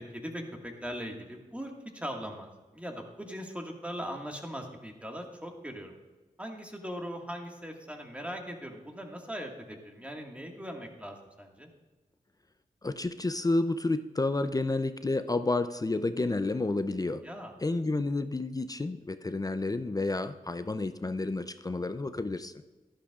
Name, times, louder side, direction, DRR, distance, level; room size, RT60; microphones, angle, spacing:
voice 1, 0.0-6.0 6.4-11.7 17.2-17.5, equal, 10° right, 1 dB, 1.8 m, -40 dB
voice 2, 12.8-17.2 17.6-22.6, left 2 dB, 25° left, 10 dB, 0.5 m, -30 dB
11.5 x 11.5 x 2.5 m, 1.3 s
cardioid pair, 55°, 15 cm